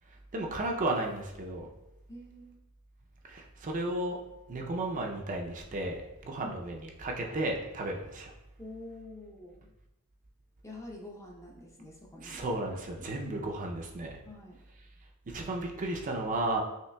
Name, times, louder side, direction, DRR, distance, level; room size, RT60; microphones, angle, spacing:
voice 1, 0.3-1.7 3.2-4.2 4.5-8.3 12.2-14.2 15.3-16.6, right 2 dB, 35° right, 1 dB, 0.5 m, -34 dB
voice 2, 2.1-2.6 6.4-6.6 8.6-9.7 10.6-12.4 13.0-13.1 14.2-14.6, left 2 dB, 15° left, -1 dB, 0.6 m, -47 dB
5.6 x 3.2 x 2.2 m, 0.94 s
head